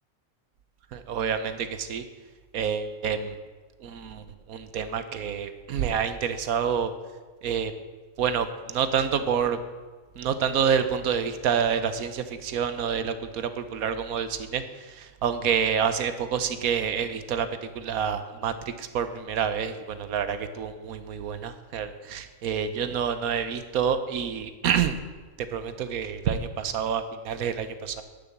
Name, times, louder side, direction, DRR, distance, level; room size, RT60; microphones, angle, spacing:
voice 1, 0.9-2.0 2.5-3.4 3.8-4.2 4.5-6.9 7.4-7.7 8.2-9.6 10.2-14.6 15.0-17.5 17.7-25.0 25.5-28.0, right 7 dB, 85° right, 10 dB, 1.3 m, -28 dB
11.5 x 7.0 x 7.3 m, 1.3 s
omnidirectional pair, 1.5 m